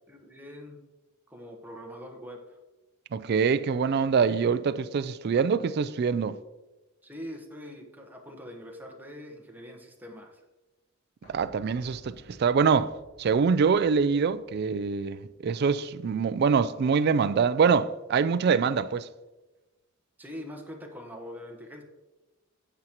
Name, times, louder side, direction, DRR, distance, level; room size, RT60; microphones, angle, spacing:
voice 1, 0.1-0.8 1.3-2.6 7.0-10.4 20.2-21.8, equal, 10° right, 1.1 m, -43 dB
voice 2, 3.1-6.4 11.3-12.9 13.2-19.1, right 5 dB, 50° right, 0.3 m, -24 dB
sound 1, 11.2-16.9 17.2-17.3, equal, 85° left, 2.9 m, -56 dB
9.5 x 7.8 x 3.0 m
head